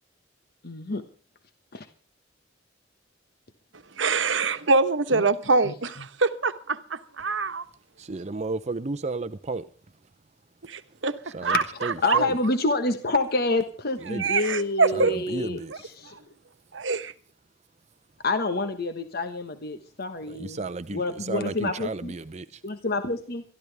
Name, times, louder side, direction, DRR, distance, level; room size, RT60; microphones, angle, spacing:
voice 1, 0.6-1.0 1.7-1.9 5.1-5.2 5.6-6.1 11.4-15.6 16.0-16.1 18.2-20.6 20.9-22.1 22.6-23.4, left 2 dB, 55° left, 1.3 m, -28 dB
voice 2, 4.0-7.6 10.7-11.1 11.4-11.6 12.1-12.2 14.2-15.1 16.7-17.1, right 4 dB, 70° right, 1.2 m, -24 dB
voice 3, 8.0-9.6 11.3-12.3 14.0-14.3 14.9-15.7 20.3-22.6, right 3 dB, 35° right, 0.6 m, -33 dB
23.0 x 13.5 x 3.4 m
head